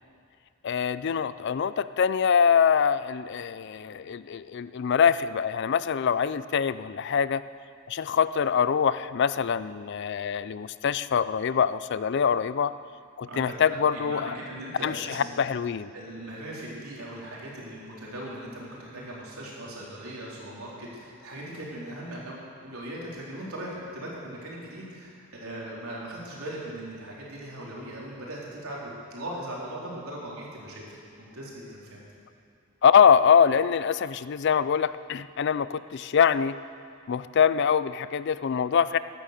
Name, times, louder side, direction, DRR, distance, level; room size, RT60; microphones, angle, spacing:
voice 1, 0.6-7.4 7.9-12.7 13.2-14.4 14.8-15.9 32.8-36.6 37.1-39.0, left 7 dB, 50° left, 15 dB, 0.4 m, -24 dB
voice 2, 13.3-15.4 15.9-22.4 22.6-32.0, right 1 dB, 80° right, -5 dB, 3.9 m, -39 dB
15.0 x 11.5 x 6.8 m, 2.3 s
head